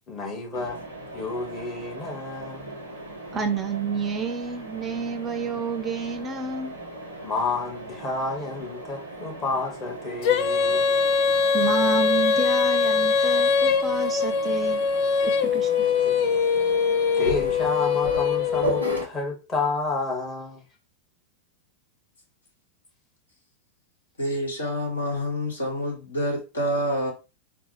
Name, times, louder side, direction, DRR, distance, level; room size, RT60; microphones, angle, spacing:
voice 1, 0.1-0.8 1.1-2.8 7.2-11.0 16.0-16.4 17.2-20.6, left 3 dB, 25° left, 1.2 m, -30 dB
Mechanisms, 0.5-19.0, right 1 dB, 85° left, 1.0 m, -37 dB
voice 2, 3.3-6.7 11.5-14.8 15.2-15.9, right 4 dB, 20° right, 0.5 m, -29 dB
Female singing, 10.2-19.0, left 5 dB, 45° left, 0.4 m, -22 dB
voice 3, 24.2-27.1, equal, 70° left, 1.3 m, -27 dB
4.0 x 2.1 x 2.9 m
figure-of-eight pair, 90°, 0 cm